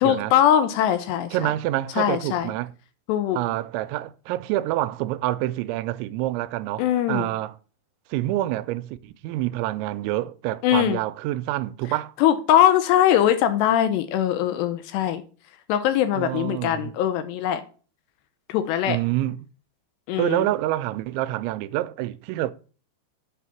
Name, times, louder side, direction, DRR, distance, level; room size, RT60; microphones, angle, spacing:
voice 1, 0.0-1.5 2.0-2.5 3.1-3.4 6.8-7.3 10.6-11.0 12.2-15.2 15.7-17.6 18.5-19.0 20.1-20.5, left 11 dB, 80° left, 2.6 m, -21 dB
voice 2, 1.3-2.7 3.3-7.6 8.1-12.1 16.1-16.9 18.9-19.4 20.2-22.5, right 15 dB, 85° right, 2.9 m, -27 dB
8.3 x 4.8 x 5.7 m
omnidirectional pair, 5.2 m